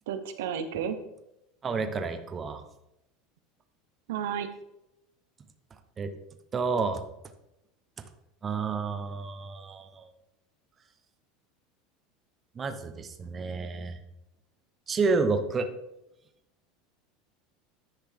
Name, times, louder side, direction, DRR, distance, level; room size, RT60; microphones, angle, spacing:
voice 1, 0.1-1.0 4.1-4.5, right 8 dB, 90° right, 9 dB, 0.8 m, -32 dB
voice 2, 1.6-2.6 6.0-6.1 6.5-7.0 8.4-10.1 12.6-14.0 14.9-15.7, right 4 dB, 20° right, 8 dB, 0.7 m, -30 dB
10.0 x 5.7 x 3.4 m, 0.86 s
supercardioid pair, 150°, 0 cm